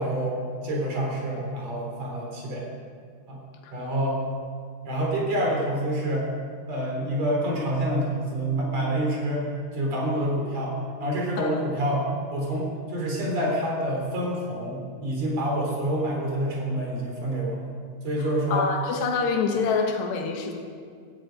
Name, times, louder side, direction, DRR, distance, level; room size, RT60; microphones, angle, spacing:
voice 1, 0.0-2.6 3.3-3.4 3.7-4.2 4.8-6.3 6.7-9.5 9.7-10.7 11.0-17.7 18.0-18.7, right 1 dB, 40° right, -2 dB, 4.6 m, -27 dB
voice 2, 18.5-20.5, left 5 dB, 75° left, 3 dB, 3.6 m, -26 dB
16.5 x 16.0 x 5.3 m, 2.1 s
omnidirectional pair, 5.1 m